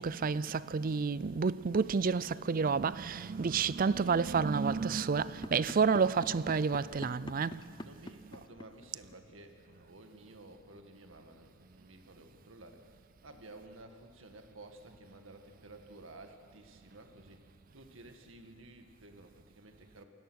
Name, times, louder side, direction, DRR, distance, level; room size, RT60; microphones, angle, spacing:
voice 1, 0.0-7.8, right 5 dB, 45° right, 0.5 m, -30 dB
sound 1, 5.3-9.3, left 2 dB, 25° left, 0.5 m, -45 dB
voice 2, 7.7-20.0, right 2 dB, 85° right, 2.0 m, -54 dB
27.5 x 17.5 x 6.5 m
head